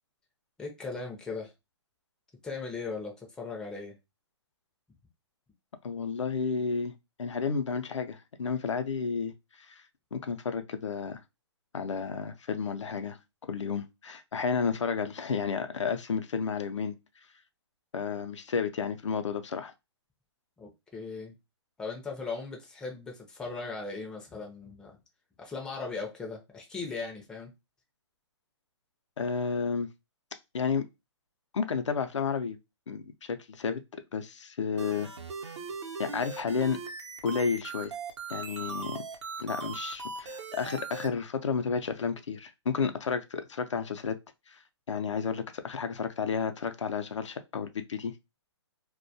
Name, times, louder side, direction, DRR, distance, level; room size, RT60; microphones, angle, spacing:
voice 1, 0.6-1.5 2.4-4.0 20.6-21.4 21.8-25.0 25.4-27.5, left 4 dB, 5° left, 0.4 m, -38 dB
voice 2, 5.8-6.9 7.2-9.3 9.7-9.8 10.1-11.2 11.7-13.2 13.5-17.0 17.9-19.7 29.2-29.9 30.5-30.9 31.5-32.6 32.9-33.8 34.1-35.1 35.4-35.5 36.0-36.8 37.2-37.9 38.3-39.0 39.4-44.2 44.5-44.6 44.9-48.1, left 5 dB, 90° left, 0.5 m, -31 dB
sound 1, 34.8-41.1, right 4 dB, 75° right, 0.7 m, -39 dB
2.2 x 2.1 x 2.6 m
hypercardioid pair, 145°, 15 cm